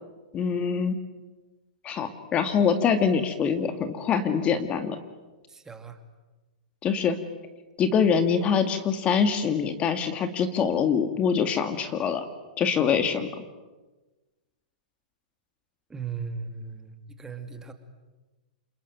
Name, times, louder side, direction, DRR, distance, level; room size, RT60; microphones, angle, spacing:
voice 1, 0.3-1.0 1.8-5.0 6.8-7.2 7.8-12.3 12.6-13.3, left 6 dB, 25° left, 9 dB, 2.0 m, -24 dB
voice 2, 5.5-6.0 15.9-17.7, right 5 dB, 10° right, 8 dB, 2.4 m, -37 dB
28.5 x 20.5 x 9.4 m, 1.2 s
hypercardioid pair, 130°, 4 cm